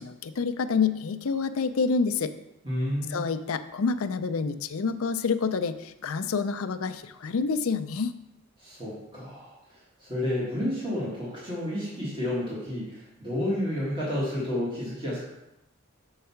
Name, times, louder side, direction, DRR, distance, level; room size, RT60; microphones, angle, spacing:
voice 1, 0.0-2.3 3.1-8.1, left 5 dB, 80° left, 10 dB, 0.5 m, -28 dB
voice 2, 2.6-3.2 8.6-15.2, left 1 dB, 20° right, -9 dB, 1.7 m, -31 dB
6.4 x 4.7 x 5.7 m, 0.92 s
head